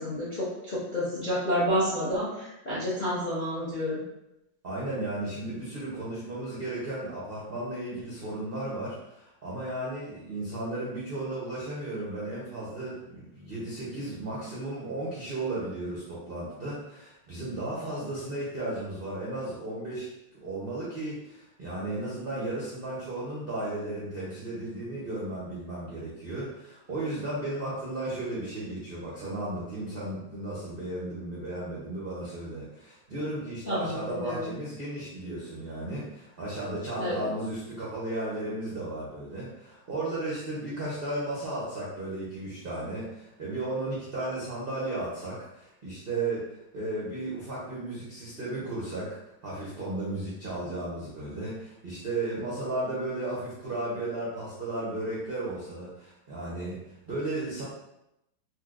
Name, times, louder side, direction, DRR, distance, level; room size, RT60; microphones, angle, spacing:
voice 1, 0.0-4.0 33.7-34.5 37.0-37.3, equal, 65° left, -9 dB, 0.4 m, -29 dB
voice 2, 4.6-49.2 49.4-57.6, right 2 dB, 80° right, -8 dB, 0.5 m, -34 dB
4.3 x 2.2 x 2.4 m, 0.87 s
omnidirectional pair, 2.1 m